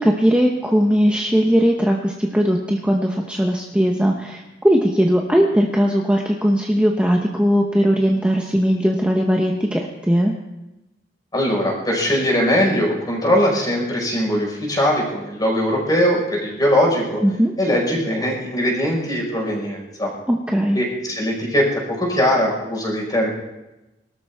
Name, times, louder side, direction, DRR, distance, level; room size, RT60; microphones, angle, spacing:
voice 1, 0.0-10.3 17.2-17.5 20.3-20.8, equal, 5° right, 0 dB, 1.0 m, -18 dB
voice 2, 11.3-17.2 17.6-20.1 20.8-23.3, equal, 25° left, -2 dB, 5.2 m, -20 dB
23.0 x 13.0 x 3.6 m, 0.98 s
head